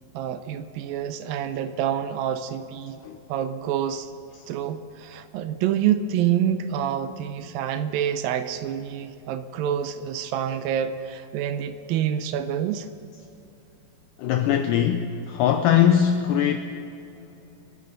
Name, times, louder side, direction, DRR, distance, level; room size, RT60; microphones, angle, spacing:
voice 1, 0.1-3.0 3.3-4.1 4.5-12.9, right 9 dB, 80° right, 10 dB, 2.2 m, -27 dB
voice 2, 14.2-16.6, left 9 dB, 85° left, 6 dB, 1.9 m, -21 dB
28.5 x 9.8 x 3.9 m, 3.0 s
omnidirectional pair, 4.4 m